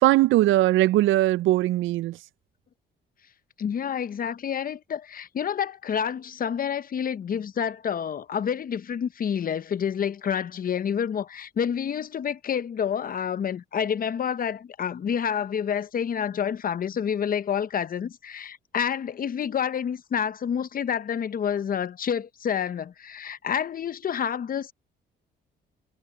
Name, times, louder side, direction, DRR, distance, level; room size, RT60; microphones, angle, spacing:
voice 1, 0.0-2.2, right 16 dB, 80° right, 0.4 m, -20 dB
voice 2, 3.6-24.7, left 8 dB, 45° left, 0.8 m, -28 dB
cardioid pair, 90°, 20 cm